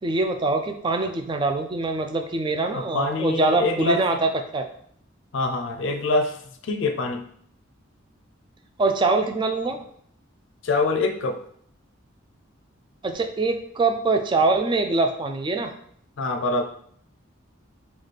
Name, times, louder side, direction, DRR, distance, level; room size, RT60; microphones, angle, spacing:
voice 1, 0.0-4.7 8.8-9.8 13.0-15.7, right 3 dB, 25° right, 5 dB, 0.3 m, -23 dB
voice 2, 2.7-4.0 5.3-7.3 10.6-11.4 16.2-16.6, left 3 dB, 65° left, 6 dB, 0.4 m, -25 dB
3.2 x 2.3 x 4.0 m, 0.63 s
head